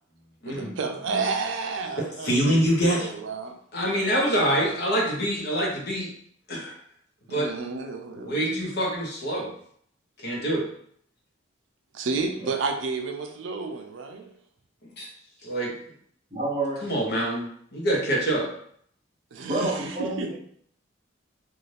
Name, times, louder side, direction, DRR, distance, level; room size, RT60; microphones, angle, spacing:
voice 1, 0.5-3.5 4.1-4.7 5.1-5.2 7.3-8.6 11.9-14.3 19.3-20.3, right 4 dB, 70° right, 5 dB, 0.4 m, -31 dB
voice 2, 2.0-3.1 3.7-6.1 6.5-6.8 7.3-7.5 8.1-9.5 10.2-10.7 15.0-15.1 15.4-15.8 16.8-18.5, equal, 55° left, -3 dB, 0.8 m, -25 dB
voice 3, 16.3-16.8 19.5-20.3, right 2 dB, 25° right, -5 dB, 0.7 m, -28 dB
2.6 x 2.4 x 3.2 m, 0.63 s
head